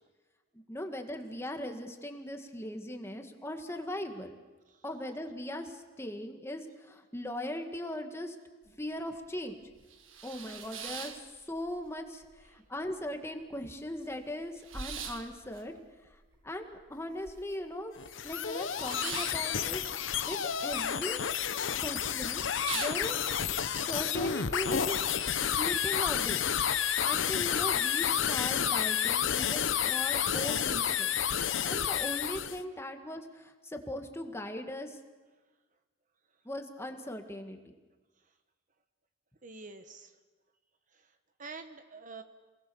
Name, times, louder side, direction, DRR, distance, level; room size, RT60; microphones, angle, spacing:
voice 1, 0.5-4.3 4.8-8.4 8.7-9.6 10.2-15.7 16.4-18.0 18.2-21.5 21.8-22.4 22.7-23.3 23.6-26.5 27.0-31.1 31.6-35.0 36.5-37.6, left 1 dB, 15° left, 5 dB, 1.8 m, -39 dB
sound 1, 8.7-8.8 9.2-9.3 9.7-11.9 12.2-12.9 13.3-13.4 13.6-17.7 18.0-20.8 21.1-21.6 22.0-22.1 22.4-23.5, right 6 dB, 90° right, 1.9 m, -43 dB
sound 2, 18.0-32.6, left 8 dB, 75° left, 0.9 m, -30 dB
voice 2, 39.4-40.2 40.9-42.2, right 4 dB, 40° right, 8 dB, 1.3 m, -49 dB
28.0 x 19.5 x 7.0 m, 1.2 s
head